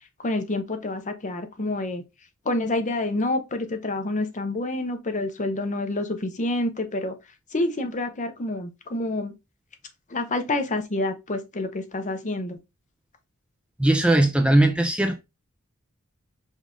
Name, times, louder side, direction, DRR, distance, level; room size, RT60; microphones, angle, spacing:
voice 1, 0.2-2.0 2.4-7.1 7.5-9.3 10.1-12.6, left 2 dB, 35° left, 0.7 m, -28 dB
voice 2, 13.8-15.2, right 1 dB, 5° right, 0.4 m, -19 dB
5.3 x 2.5 x 3.6 m
head